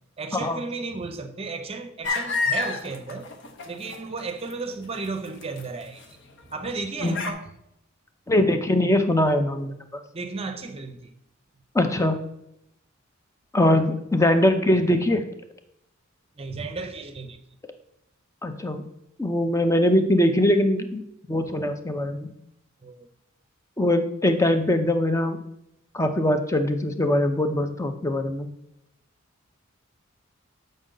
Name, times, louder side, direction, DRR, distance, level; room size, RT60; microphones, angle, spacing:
voice 1, 0.2-3.3 3.7-6.0 6.5-7.5 10.1-11.1 16.4-17.4 22.8-23.1, right 3 dB, 30° right, 0.7 m, -34 dB
sound 1, 2.0-4.2 4.5-5.6 6.0-6.1 6.6-6.7 7.0-7.3, left 4 dB, 55° left, 0.9 m, -28 dB
voice 2, 8.3-9.7 11.7-12.2 13.5-15.2 18.4-18.8 19.2-21.0 21.3-22.3 23.8-25.4 25.9-28.5, left 1 dB, 15° left, 0.6 m, -22 dB
7.7 x 5.3 x 3.8 m
head